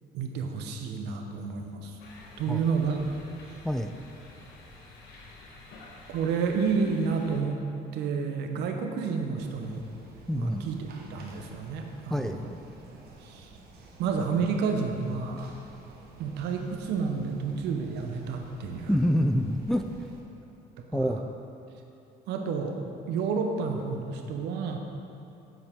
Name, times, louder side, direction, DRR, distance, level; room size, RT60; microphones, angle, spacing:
voice 1, 0.1-2.0 2.4-3.0 3.5-3.6 6.1-7.6 7.9-9.8 10.3-10.8 11.1-12.5 13.2-13.5 14.0-15.5 16.2-18.9 20.8-21.1 22.3-22.8 23.1-24.8, right 5 dB, 85° right, 4 dB, 0.8 m, -30 dB
sound 1, 2.0-7.4, left 2 dB, 80° left, 1.3 m, -49 dB
sound 2, 9.4-20.2, right 3 dB, 65° right, 1.2 m, -51 dB
voice 2, 10.3-10.7 12.1-12.4 18.9-19.9 20.9-21.2, equal, 5° left, 6 dB, 0.3 m, -26 dB
8.2 x 7.4 x 3.6 m, 2.8 s
cardioid pair, 110°, 17 cm